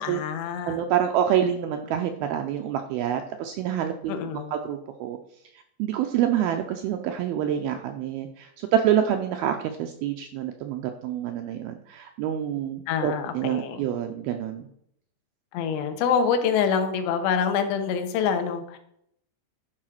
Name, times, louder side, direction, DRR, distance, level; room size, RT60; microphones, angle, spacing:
voice 1, 0.0-0.8 4.1-4.5 12.9-13.8 15.5-18.8, left 7 dB, 80° left, 7 dB, 3.1 m, -26 dB
voice 2, 0.7-5.2 5.8-14.7, right 10 dB, 85° right, 5 dB, 2.2 m, -27 dB
11.0 x 4.9 x 5.9 m, 0.72 s
omnidirectional pair, 5.0 m